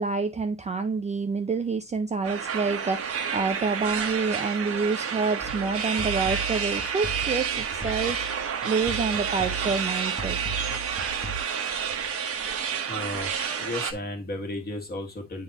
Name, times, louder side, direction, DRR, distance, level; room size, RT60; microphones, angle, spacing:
voice 1, 0.0-10.4, right 4 dB, 25° right, 0.4 m, -28 dB
sound 1, 2.2-13.9, right 7 dB, 50° right, 1.1 m, -30 dB
sound 2, 5.4-11.4, right 3 dB, ahead, 1.1 m, -37 dB
voice 2, 12.9-15.4, left 1 dB, 30° left, 1.7 m, -34 dB
9.5 x 3.9 x 2.9 m
cardioid pair, 160°, 31 cm